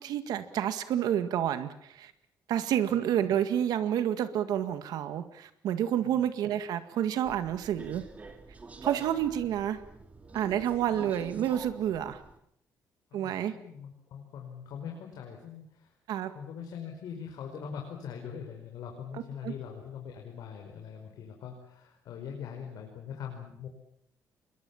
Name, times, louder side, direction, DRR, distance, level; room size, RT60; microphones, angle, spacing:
voice 1, 0.0-2.1 2.5-8.0 8.8-9.8 10.3-12.2 13.1-13.5 16.1-16.3 19.4-19.5, right 10 dB, 75° right, 10 dB, 1.9 m, -29 dB
voice 2, 2.8-3.3 6.0-6.2 9.0-9.1 10.9-11.1 13.1-15.9 16.3-23.7, left 7 dB, 70° left, 2 dB, 5.0 m, -42 dB
Subway metro underground, 7.2-12.4, right 3 dB, 20° right, 2.5 m, -46 dB
28.0 x 22.0 x 7.2 m, 0.71 s
cardioid pair, 165°, 7 cm